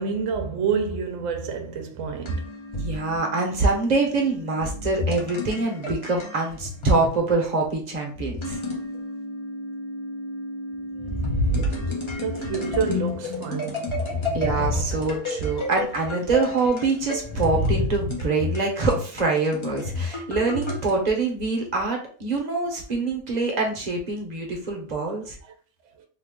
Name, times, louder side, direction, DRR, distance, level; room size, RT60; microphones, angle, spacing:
voice 1, 0.0-2.4 11.5-11.8 12.2-13.8 25.4-25.5, right 5 dB, 75° right, 0.9 m, -28 dB
sound 1, 2.3-7.2 8.2-21.1, left 2 dB, 30° left, 0.6 m, -32 dB
voice 2, 2.7-8.6 14.3-25.4, right 3 dB, 40° right, 0.9 m, -25 dB
sound 2, 11.0-12.6 14.0-15.7 17.2-18.5, left 1 dB, 50° left, 1.6 m, -27 dB
3.0 x 2.3 x 3.6 m
omnidirectional pair, 1.3 m